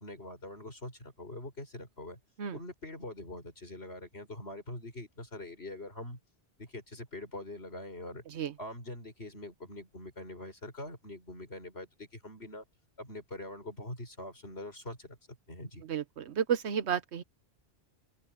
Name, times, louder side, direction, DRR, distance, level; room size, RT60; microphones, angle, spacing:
voice 1, 0.0-2.2 2.5-6.2 6.6-8.2 8.6-12.6 13.0-15.8, left 1 dB, 70° left, 6.5 m, -44 dB
voice 2, 15.9-17.2, right 8 dB, 90° right, 1.2 m, -32 dB
omnidirectional pair, 1.1 m